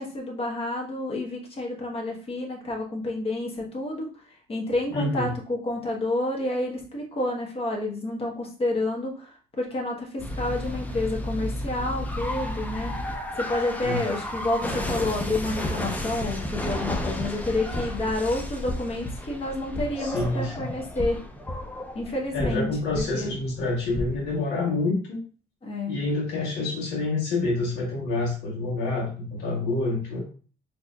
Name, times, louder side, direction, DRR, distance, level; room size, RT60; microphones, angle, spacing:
voice 1, 0.0-4.1 4.5-12.9 13.4-21.2 21.9-22.7 22.9-23.3 25.6-26.0, left 2 dB, 35° left, 0 dB, 1.1 m, -29 dB
voice 2, 4.9-5.3 13.8-14.0 20.0-20.8 22.3-25.2 25.9-30.2, left 2 dB, 90° left, -4 dB, 1.2 m, -27 dB
sound 1, 10.2-24.4, left 1 dB, 10° left, 0.5 m, -32 dB
4.2 x 2.8 x 2.3 m, 0.39 s
cardioid pair, 110°, 17 cm